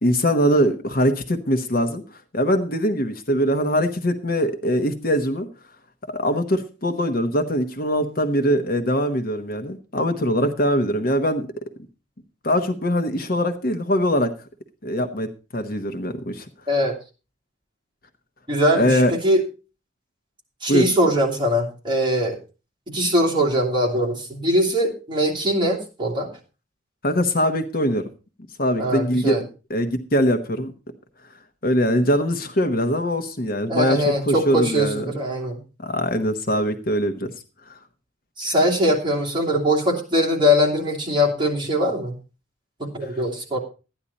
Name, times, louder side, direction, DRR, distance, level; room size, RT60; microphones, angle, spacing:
voice 1, 0.0-2.0 2.3-5.5 6.1-11.5 12.4-14.3 14.8-15.3 15.5-16.5 18.7-19.1 20.7-20.9 27.0-28.0 28.6-29.4 29.7-30.7 31.6-35.0 35.8-37.3 37.7-37.8 43.0-43.1, equal, 45° left, 7 dB, 1.0 m, -22 dB
voice 2, 18.5-19.4 20.6-22.4 22.9-26.3 28.8-29.4 33.7-35.6 38.4-42.1 42.8-43.6, equal, 25° right, -3 dB, 2.7 m, -21 dB
13.0 x 10.0 x 4.1 m, 0.33 s
head